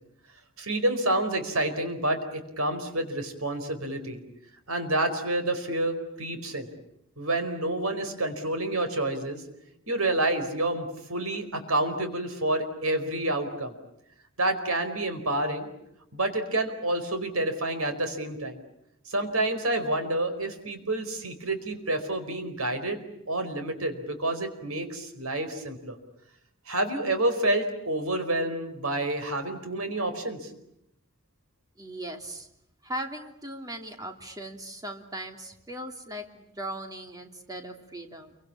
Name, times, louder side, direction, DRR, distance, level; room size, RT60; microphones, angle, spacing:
voice 1, 0.6-4.2 4.7-6.7 7.2-9.4 9.9-13.7 14.4-15.7 16.1-18.6 19.1-26.0 26.7-30.5, right 1 dB, 85° right, 8 dB, 4.7 m, -28 dB
voice 2, 31.8-32.5 32.8-38.4, right 1 dB, 15° right, 4 dB, 2.9 m, -38 dB
29.0 x 24.5 x 8.6 m, 0.79 s
head